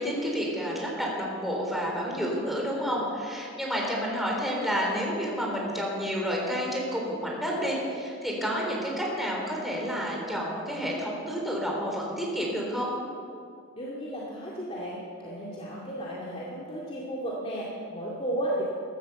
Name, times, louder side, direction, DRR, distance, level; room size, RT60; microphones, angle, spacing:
voice 1, 0.0-12.9, equal, ahead, -3 dB, 3.8 m, -30 dB
voice 2, 13.8-18.6, right 1 dB, 30° left, -5 dB, 2.3 m, -34 dB
16.0 x 13.0 x 7.0 m, 2.4 s
head